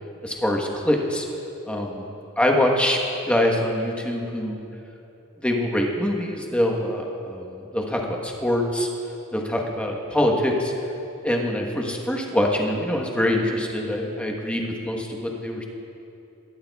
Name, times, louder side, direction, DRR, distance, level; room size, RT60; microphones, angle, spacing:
voice 1, 0.2-1.3 1.7-2.1 2.4-3.0 3.2-4.7 5.4-8.9 9.3-10.7 11.2-15.6, left 1 dB, 5° left, 0 dB, 1.1 m, -24 dB
19.5 x 13.5 x 2.3 m, 2.9 s
head